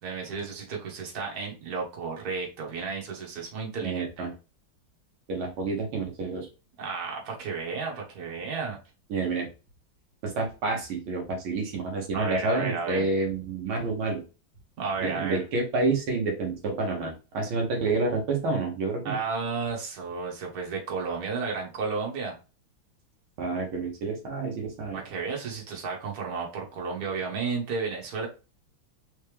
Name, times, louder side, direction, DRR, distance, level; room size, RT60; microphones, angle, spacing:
voice 1, 0.0-4.3 6.8-8.8 12.1-13.1 14.8-15.4 19.0-22.3 24.9-28.3, right 4 dB, 50° right, 0 dB, 1.7 m, -32 dB
voice 2, 3.8-4.3 5.3-6.5 9.1-9.5 10.2-14.2 15.0-19.2 23.4-25.0, right 3 dB, 80° right, 1 dB, 1.8 m, -29 dB
3.8 x 3.4 x 3.3 m, 0.31 s
omnidirectional pair, 2.2 m